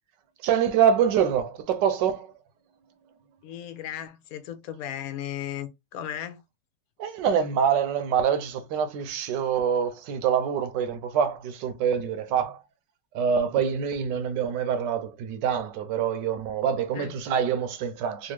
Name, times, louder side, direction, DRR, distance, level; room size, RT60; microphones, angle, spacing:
voice 1, 0.4-2.3 7.0-12.6 13.1-18.3, right 7 dB, 80° right, 1.3 m, -25 dB
voice 2, 3.4-6.4 16.9-17.1, left 11 dB, 70° left, 0.9 m, -36 dB
3.4 x 2.5 x 3.1 m
omnidirectional pair, 1.9 m